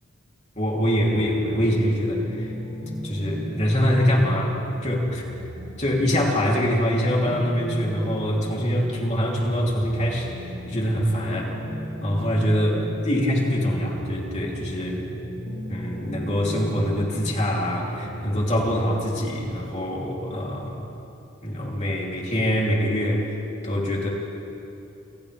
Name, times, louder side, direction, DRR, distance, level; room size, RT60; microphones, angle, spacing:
voice 1, 0.6-2.5 3.0-5.2 5.8-11.6 12.0-12.8 13.1-15.1 15.7-20.9 21.4-23.4 23.6-24.1, equal, 35° left, -3 dB, 3.3 m, -24 dB
sound 1, 1.1-18.7, equal, 70° right, 3.5 m, -36 dB
29.0 x 27.0 x 3.5 m, 2.8 s
head